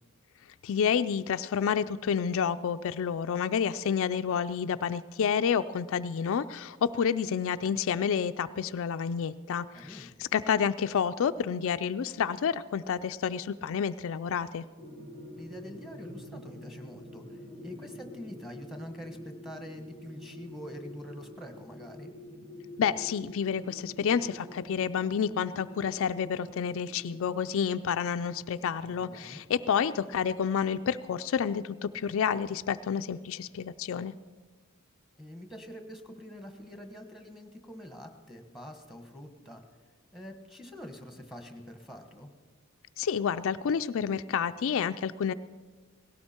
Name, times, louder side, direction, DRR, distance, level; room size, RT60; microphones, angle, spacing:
voice 1, 0.6-14.6 22.8-34.1 43.0-45.3, left 7 dB, 65° left, 10 dB, 0.4 m, -29 dB
voice 2, 9.7-10.1 15.4-22.1 28.8-29.4 35.2-39.6 40.1-42.3, equal, ahead, 5 dB, 1.4 m, -45 dB
sound 1, 14.8-30.4, left 1 dB, 60° right, 2.9 m, -48 dB
18.0 x 16.5 x 4.4 m, 1.4 s
head